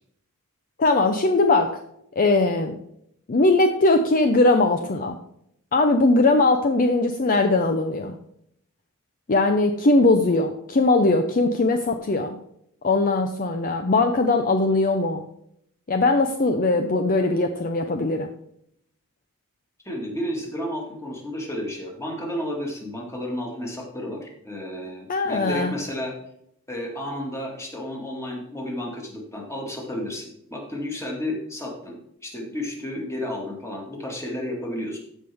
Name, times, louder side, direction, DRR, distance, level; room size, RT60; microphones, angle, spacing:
voice 1, 0.8-1.8 2.2-2.8 3.3-5.2 5.7-8.2 9.3-12.4 12.8-15.2 15.9-18.3 25.1-25.7, left 2 dB, 40° left, 6 dB, 0.6 m, -20 dB
voice 2, 19.8-26.2 26.7-35.0, left 1 dB, 10° left, -1 dB, 2.1 m, -32 dB
14.5 x 5.4 x 3.5 m, 0.73 s
head